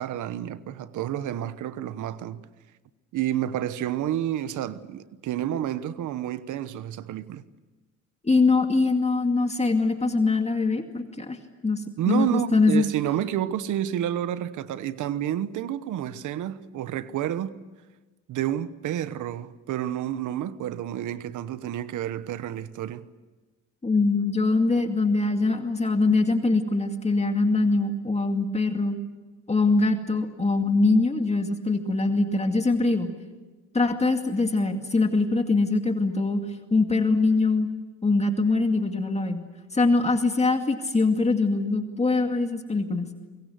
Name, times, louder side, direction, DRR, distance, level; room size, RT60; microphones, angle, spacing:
voice 1, 0.0-2.4 3.1-7.4 12.0-17.6 18.3-23.1, right 11 dB, 80° right, 1.1 m, -29 dB
voice 2, 8.2-11.4 11.6-12.9 23.8-29.0 29.5-33.1 33.7-36.4 36.7-37.7 38.0-39.4 39.7-43.1, left 3 dB, 20° left, 2.3 m, -23 dB
25.0 x 23.0 x 8.1 m
cardioid pair, 90°, 30 cm